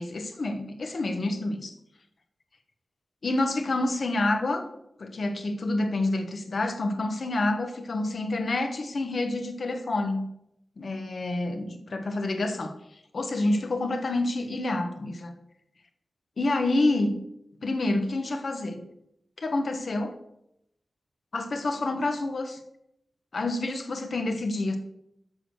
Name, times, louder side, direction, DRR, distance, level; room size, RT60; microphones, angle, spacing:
voice 1, 0.0-1.8 3.2-4.6 5.0-10.3 10.8-12.7 13.1-15.3 16.4-17.2 17.6-18.8 19.4-20.1 21.3-22.6 23.3-24.8, left 2 dB, 60° left, 6 dB, 1.2 m, -28 dB
7.7 x 6.4 x 6.3 m, 0.80 s
wide cardioid pair, 105°, 0 cm